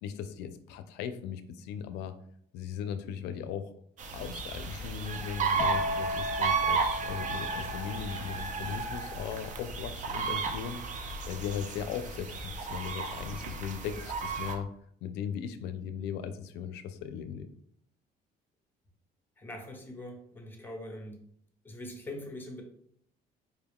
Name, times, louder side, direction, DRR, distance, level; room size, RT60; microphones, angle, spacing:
voice 1, 0.0-2.2 2.5-3.7 4.1-14.7 15.0-17.5, left 8 dB, 90° left, 11 dB, 0.4 m, -38 dB
sound 1, 4.0-14.6, right 5 dB, 50° right, 0.6 m, -33 dB
sound 2, 5.6-13.2 13.4-13.9, left 3 dB, 40° left, 0.7 m, -38 dB
voice 2, 19.4-21.2 21.6-22.6, left 1 dB, 10° left, 2 dB, 1.0 m, -42 dB
4.7 x 2.3 x 3.5 m, 0.67 s
cardioid pair, 110°, 17 cm